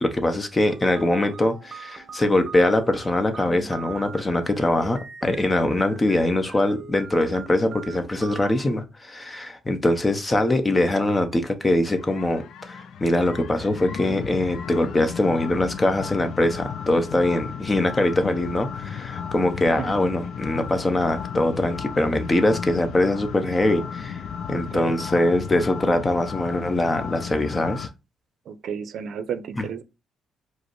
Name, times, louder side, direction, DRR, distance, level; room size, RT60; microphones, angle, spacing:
voice 1, 0.0-24.2 24.5-27.9, left 1 dB, 20° left, 0.7 m, -23 dB
sound 1, 0.7-8.7, right 5 dB, 40° right, 0.9 m, -40 dB
sound 2, 12.0-27.9, left 7 dB, 70° left, 0.3 m, -34 dB
voice 2, 24.5-25.0 28.5-29.8, right 7 dB, 65° right, 0.5 m, -32 dB
4.9 x 2.0 x 4.5 m
cardioid pair, 90°, 0 cm